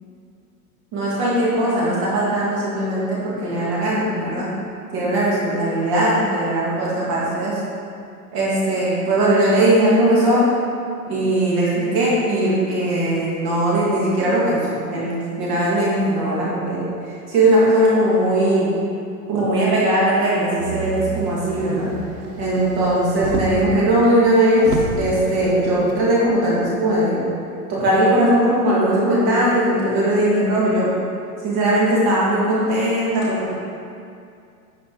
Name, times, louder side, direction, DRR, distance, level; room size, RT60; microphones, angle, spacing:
voice 1, 0.9-4.5 4.9-7.6 8.3-10.5 11.1-16.8 17.3-18.8 19.3-21.9 22.4-27.2 27.7-30.9 31.4-33.5, right 1 dB, 25° right, -7 dB, 1.8 m, -19 dB
Motor vehicle (road), 20.6-23.7 24.2-24.3 24.6-26.0 26.9-27.0, right 3 dB, 70° right, 1.2 m, -30 dB
10.0 x 5.1 x 3.8 m, 2.4 s
supercardioid pair, 165°, 46 cm